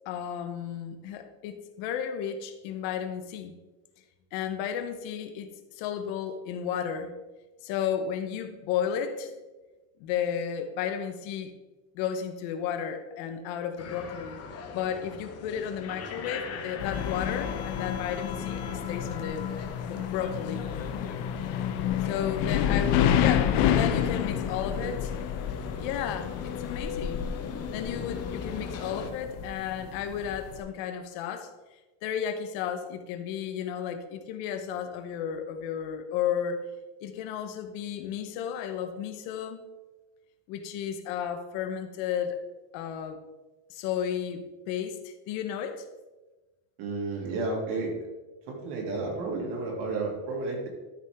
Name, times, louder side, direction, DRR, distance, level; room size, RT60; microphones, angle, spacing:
voice 1, 0.0-3.6 4.3-7.1 7.6-9.4 10.0-11.5 11.9-14.4 14.7-19.5 19.8-20.6 22.0-25.1 25.8-27.3 27.7-31.5 32.0-36.6 37.0-39.7 40.5-42.4 42.7-43.2 43.7-45.9, left 8 dB, 85° left, 8 dB, 1.2 m, -33 dB
sound 1, 13.8-29.1, left 6 dB, 35° left, 1.0 m, -40 dB
sound 2, 16.8-30.6, left 9 dB, 65° left, 0.9 m, -29 dB
voice 2, 46.8-48.0 48.5-50.7, right 3 dB, 65° right, -1 dB, 3.1 m, -32 dB
13.0 x 6.0 x 3.7 m, 1.1 s
cardioid pair, 170°, 44 cm